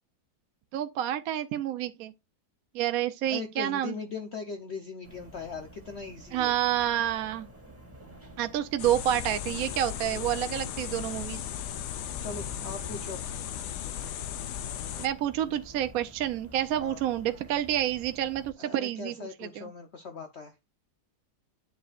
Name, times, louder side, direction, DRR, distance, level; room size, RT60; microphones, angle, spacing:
voice 1, 0.7-2.1 2.7-4.0 6.3-7.5 8.4-11.4 15.0-19.6, right 12 dB, 65° right, 1.0 m, -29 dB
voice 2, 3.2-6.5 12.2-13.2 16.8-17.0 18.6-20.5, left 5 dB, 50° left, 1.0 m, -39 dB
sound 1, 5.0-18.5, right 1 dB, 10° right, 2.3 m, -49 dB
sound 2, 8.8-15.1, left 10 dB, 80° left, 1.3 m, -36 dB
9.3 x 7.2 x 2.4 m
omnidirectional pair, 1.8 m